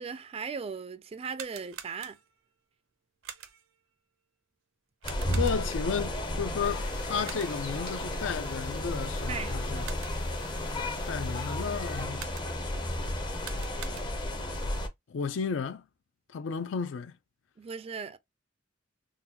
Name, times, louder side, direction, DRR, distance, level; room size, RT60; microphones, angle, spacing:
voice 1, 0.0-2.2 9.3-9.8 17.6-18.2, right 5 dB, 30° right, 0.3 m, -38 dB
sound 1, 1.1-2.5 3.2-3.8 5.0-5.9 7.2-7.8 9.6-10.4 12.1-12.8 13.3-14.4, right 9 dB, 85° right, 0.6 m, -46 dB
sound 2, 5.0-14.9, left 1 dB, 25° left, 0.6 m, -33 dB
voice 2, 5.3-9.8 11.1-12.3 15.1-15.8 16.3-17.1, left 6 dB, 70° left, 0.4 m, -33 dB
sound 3, 6.6-12.1, left 4 dB, 45° left, 1.5 m, -48 dB
3.8 x 2.2 x 2.7 m
head